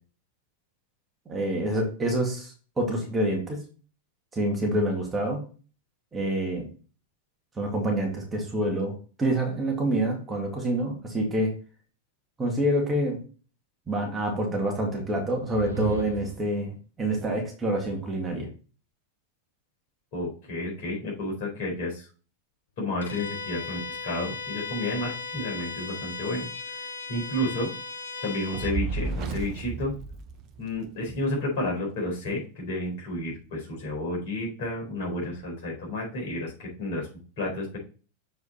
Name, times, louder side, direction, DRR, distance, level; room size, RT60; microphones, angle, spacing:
voice 1, 1.3-3.6 4.3-5.4 6.1-6.7 7.6-11.5 12.4-13.2 13.9-18.5, right 1 dB, 15° right, 2 dB, 2.2 m, -27 dB
sound 1, 15.4-16.5, right 4 dB, 80° right, 1.0 m, -36 dB
voice 2, 20.1-22.1 22.8-26.5 27.1-27.7 28.2-29.9 30.6-37.1 37.4-37.8, left 1 dB, 50° left, -2 dB, 4.3 m, -31 dB
Bowed string instrument, 23.0-28.8, left 4 dB, 65° left, 0.9 m, -37 dB
Fire, 28.5-31.0, right 4 dB, 35° right, 0.9 m, -33 dB
7.0 x 4.7 x 4.3 m, 0.37 s
figure-of-eight pair, 90°, 0 cm